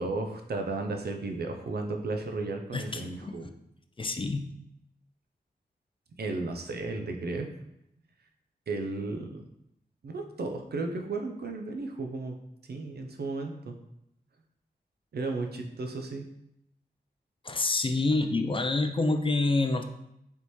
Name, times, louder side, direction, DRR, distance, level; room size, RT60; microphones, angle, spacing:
voice 1, 0.0-3.5 6.2-7.5 8.7-9.5 10.0-12.4 12.7-13.8 15.1-16.2, right 3 dB, 70° right, 4 dB, 0.6 m, -34 dB
voice 2, 2.7-3.4 4.0-4.4 17.4-19.8, left 2 dB, 30° left, 7 dB, 0.4 m, -27 dB
4.1 x 3.4 x 3.1 m, 0.81 s
wide cardioid pair, 80°, 17 cm